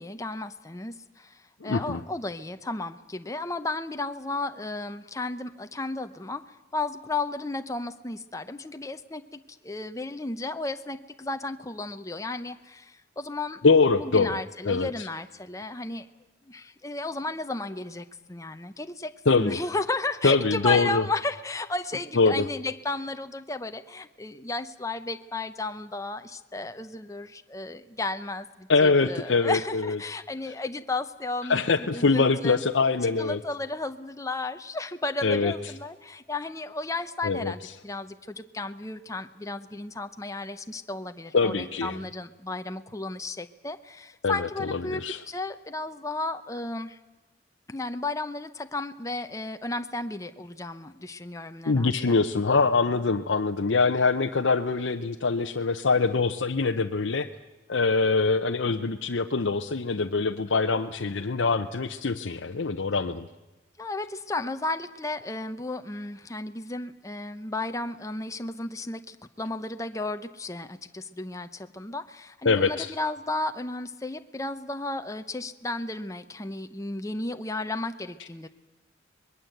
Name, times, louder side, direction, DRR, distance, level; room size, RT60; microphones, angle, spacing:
voice 1, 0.0-13.6 14.0-16.1 16.5-32.6 33.0-47.0 47.7-52.2 63.8-78.5, left 2 dB, 15° left, 8 dB, 0.7 m, -34 dB
voice 2, 1.6-2.0 13.6-14.4 14.7-15.1 19.3-19.6 20.2-21.0 22.2-22.5 28.7-30.0 31.5-33.4 35.2-35.5 37.2-37.5 41.3-42.0 44.2-45.2 51.7-57.3 57.7-63.2 72.4-72.9, left 4 dB, 80° left, 5 dB, 0.8 m, -24 dB
24.5 x 21.0 x 7.9 m, 1.1 s
head